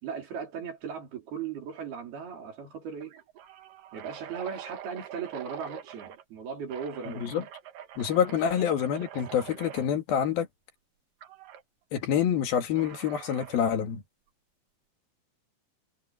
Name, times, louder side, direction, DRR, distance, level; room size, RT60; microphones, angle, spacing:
voice 1, 0.0-3.2 3.9-7.2, right 6 dB, 90° right, 6.2 m, -37 dB
sound 1, 1.7-2.0 2.3-2.4 3.0-6.2 6.7-9.9 11.2-11.6 12.8-13.7, right 10 dB, 65° right, 3.1 m, -45 dB
voice 2, 8.0-10.5 11.9-14.0, left 8 dB, 75° left, 3.7 m, -27 dB
omnidirectional pair, 4.3 m